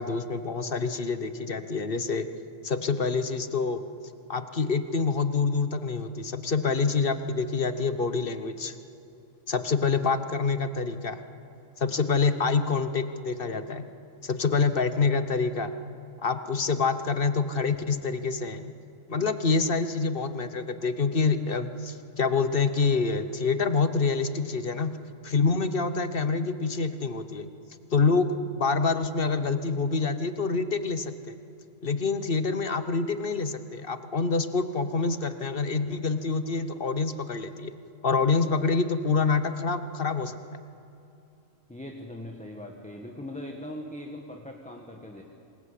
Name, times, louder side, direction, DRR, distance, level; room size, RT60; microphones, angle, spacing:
voice 1, 0.0-2.3 2.6-3.8 4.3-8.7 9.5-11.2 11.8-13.9 14.2-15.7 16.2-18.7 19.1-25.0 25.2-27.5 27.9-31.3 31.8-37.7 38.0-40.4, left 4 dB, 45° left, 11 dB, 1.2 m, -26 dB
voice 2, 41.7-45.2, left 1 dB, 5° left, 2 dB, 1.6 m, -40 dB
26.5 x 21.0 x 8.3 m, 2.8 s
omnidirectional pair, 1.4 m